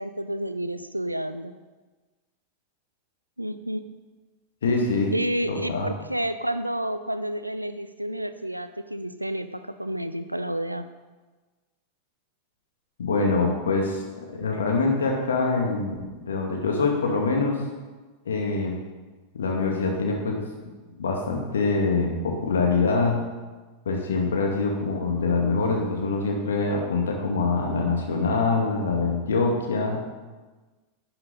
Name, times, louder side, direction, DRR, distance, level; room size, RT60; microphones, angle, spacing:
voice 1, 0.0-1.5 3.4-3.9 5.1-10.9 29.5-29.9, right 1 dB, 90° right, 11 dB, 0.5 m, -30 dB
voice 2, 4.6-5.1 5.5-5.9 13.0-14.0 14.3-17.6 18.3-18.8 19.3-20.5 21.0-23.2 23.9-30.0, left 3 dB, 65° left, 0 dB, 2.2 m, -24 dB
11.5 x 8.7 x 4.1 m, 1.3 s
figure-of-eight pair, 90°, 0 cm